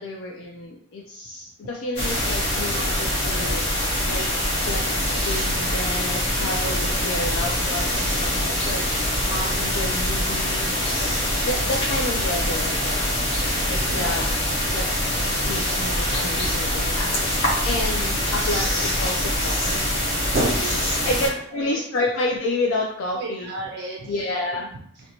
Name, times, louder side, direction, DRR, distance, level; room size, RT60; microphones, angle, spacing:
voice 1, 0.0-3.6 4.1-4.3 4.6-10.7 11.4-14.3 14.7-15.1 15.4-19.9 20.5-20.6 21.0-23.5 24.1-24.7, left 2 dB, 80° left, -1 dB, 0.4 m, -30 dB
sound 1, 2.0-21.3, equal, 60° left, 0.8 m, -24 dB
voice 2, 10.9-11.4 13.3-14.2 16.4-16.6 20.2-21.8 23.2-24.4, right 2 dB, 55° right, -1 dB, 0.4 m, -33 dB
2.6 x 2.1 x 2.8 m, 0.66 s
head